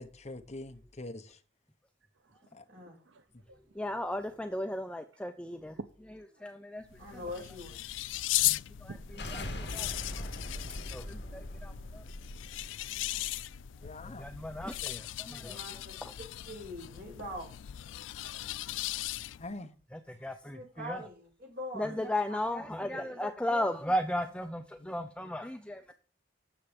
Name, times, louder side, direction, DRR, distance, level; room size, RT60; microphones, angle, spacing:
voice 1, 0.0-1.4 2.5-2.6 3.3-3.4 13.8-14.3 19.4-19.7 24.8-25.3, left 2 dB, 35° left, 1.1 m, -44 dB
voice 2, 2.8-3.8 5.8-5.9 8.9-9.0 20.3-20.4 25.9-26.0, right 3 dB, 80° right, 0.6 m, -48 dB
voice 3, 3.8-5.8 6.4-6.8 8.4-8.9 9.3-9.9 10.1-10.3 10.9-12.0 14.0-15.6 19.9-21.0 21.7-25.8, left 1 dB, 5° left, 0.6 m, -35 dB
sound 1, 6.8-19.6, left 16 dB, 90° left, 0.4 m, -37 dB
voice 4, 7.0-7.8 15.4-16.0 16.4-17.5 20.4-22.0 22.3-22.4 22.9-23.2, left 1 dB, 55° right, 6.8 m, -43 dB
sound 2, 8.8-13.9, left 1 dB, 65° left, 2.3 m, -42 dB
10.0 x 7.0 x 5.2 m
head